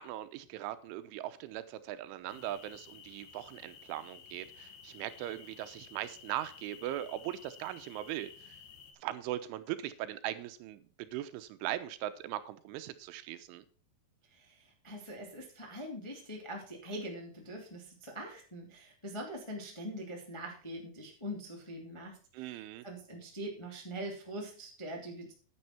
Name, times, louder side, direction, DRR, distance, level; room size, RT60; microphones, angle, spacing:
voice 1, 0.0-8.6 9.0-13.6 22.3-22.9, right 13 dB, 80° right, 11 dB, 3.3 m, -40 dB
sound 1, 2.3-8.9, left 7 dB, 75° left, 3.9 m, -54 dB
voice 2, 14.3-25.3, equal, 20° left, -1 dB, 0.7 m, -43 dB
9.8 x 9.6 x 4.4 m, 0.42 s
omnidirectional pair, 5.5 m